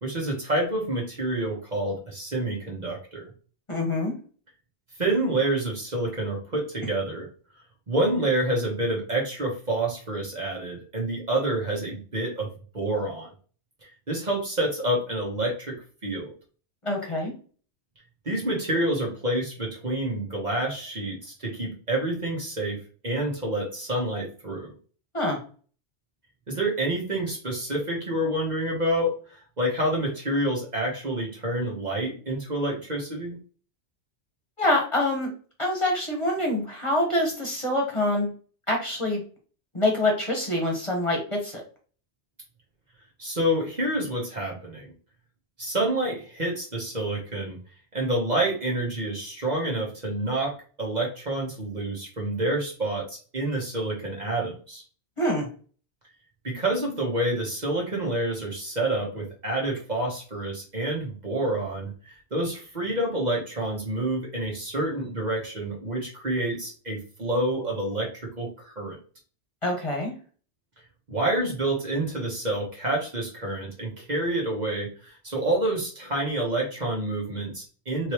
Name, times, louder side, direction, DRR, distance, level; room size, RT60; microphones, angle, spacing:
voice 1, 0.0-3.3 5.0-7.3 7.9-12.5 12.7-13.3 14.1-15.8 16.0-16.3 18.2-24.7 26.5-29.1 29.6-33.4 43.2-44.9 45.6-47.6 47.9-54.8 56.4-68.1 68.4-69.0 71.1-78.1, right 1 dB, 40° right, -1 dB, 1.3 m, -28 dB
voice 2, 3.7-4.1 16.8-17.3 25.1-25.4 34.6-35.3 35.6-38.3 38.7-39.2 39.7-41.6 55.2-55.5 69.6-70.1, left 1 dB, 30° left, 0 dB, 1.3 m, -25 dB
4.2 x 3.3 x 3.0 m, 0.39 s
omnidirectional pair, 1.2 m